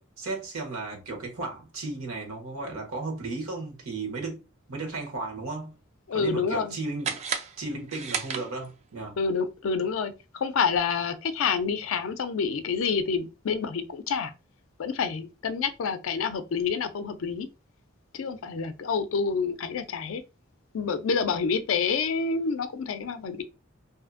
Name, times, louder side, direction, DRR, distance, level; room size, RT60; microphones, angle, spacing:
voice 1, 0.0-4.4 4.7-5.8 6.1-7.2 7.6-9.2, right 3 dB, 80° right, 1.0 m, -35 dB
voice 2, 6.1-6.8 9.2-14.3 14.8-17.5 18.1-20.2 20.7-23.4, left 5 dB, 70° left, 0.4 m, -28 dB
sound 1, 7.0-8.9, right 6 dB, 30° right, 0.3 m, -34 dB
2.6 x 2.4 x 2.4 m
head